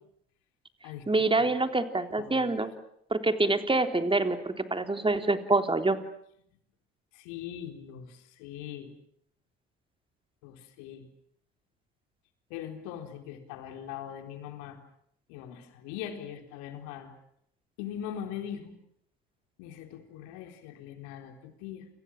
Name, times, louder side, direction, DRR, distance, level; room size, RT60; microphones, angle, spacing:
voice 1, 1.1-2.7 3.1-6.0, right 2 dB, 15° right, 7 dB, 3.7 m, -26 dB
voice 2, 2.2-2.5 7.1-8.9 10.4-11.1 12.5-14.8 15.3-17.1 17.8-18.8 19.6-21.9, left 9 dB, 75° left, 6 dB, 4.1 m, -41 dB
29.5 x 25.0 x 7.5 m, 0.70 s
hypercardioid pair, 60°, 30 cm